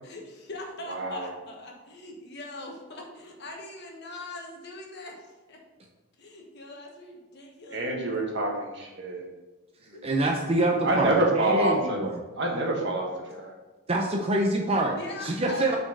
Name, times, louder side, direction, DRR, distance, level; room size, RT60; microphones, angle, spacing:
voice 1, 0.0-5.6 6.2-8.1 9.9-10.1 14.9-15.8, left 2 dB, 55° left, 1 dB, 1.3 m, -41 dB
voice 2, 0.9-1.3 7.7-9.2 9.9-10.1 10.8-12.0 12.4-13.5, right 1 dB, 55° right, 0 dB, 1.4 m, -27 dB
voice 3, 10.0-12.2 13.9-15.0 15.2-15.8, right 1 dB, 30° right, 0 dB, 0.6 m, -26 dB
6.1 x 4.3 x 5.5 m, 1.2 s
head